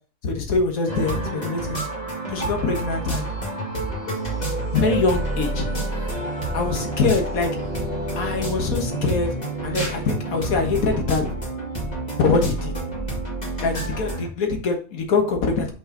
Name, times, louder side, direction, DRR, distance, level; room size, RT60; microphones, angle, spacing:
voice 1, 0.2-1.8 2.3-3.3 4.7-5.7 6.5-7.6 8.1-11.4 12.2-12.7 13.6-15.7, left 4 dB, 75° left, 3 dB, 1.8 m, -23 dB
sound 1, 0.9-14.3, right 2 dB, 30° left, 2.0 m, -28 dB
5.7 x 5.5 x 3.8 m, 0.39 s
omnidirectional pair, 1.5 m